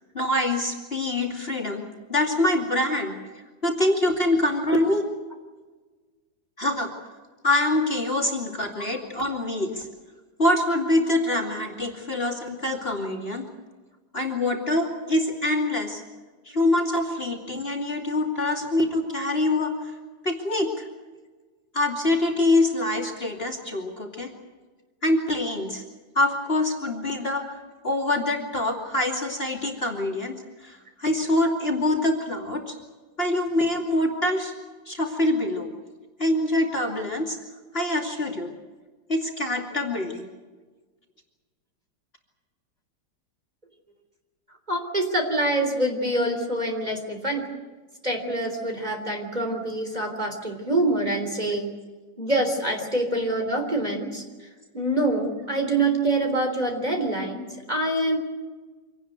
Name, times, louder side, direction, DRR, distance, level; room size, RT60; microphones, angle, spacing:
voice 1, 0.1-1.8 2.1-3.2 3.6-5.1 6.6-6.9 7.4-9.9 10.4-13.5 14.1-16.0 16.5-19.9 20.2-20.8 21.7-24.3 25.0-25.8 26.1-27.5 27.8-30.3 30.6-32.7 33.2-34.5 34.9-35.7 36.2-37.4 37.7-38.5 39.1-40.2, left 1 dB, 30° left, 0 dB, 2.7 m, -25 dB
voice 2, 44.7-47.4 48.0-51.7 52.2-54.5 54.7-58.2, right 1 dB, 20° right, 4 dB, 3.7 m, -25 dB
26.0 x 18.0 x 8.1 m, 1.3 s
omnidirectional pair, 2.0 m